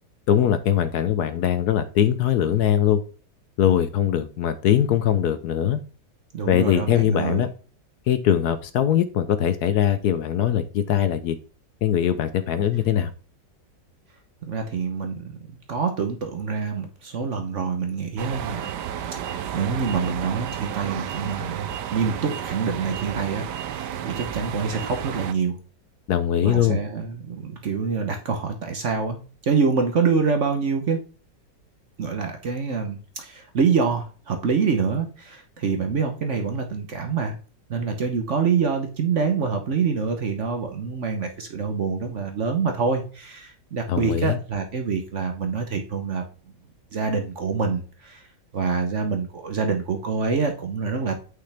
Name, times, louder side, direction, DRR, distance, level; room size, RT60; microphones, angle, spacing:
voice 1, 0.3-3.0 3.6-5.8 6.5-7.5 8.1-11.4 11.8-13.1 26.1-26.8 43.9-44.4, left 10 dB, 70° left, 11 dB, 1.1 m, -21 dB
voice 2, 6.3-7.4 14.5-15.3 15.7-18.7 19.3-25.6 26.4-29.2 29.4-31.0 32.0-37.3 37.7-46.2 46.9-48.2 48.5-51.2, right 5 dB, 50° right, 5 dB, 1.0 m, -26 dB
sound 1, 18.2-25.3, right 9 dB, 75° right, 1.2 m, -32 dB
8.5 x 5.7 x 3.4 m, 0.38 s
omnidirectional pair, 2.0 m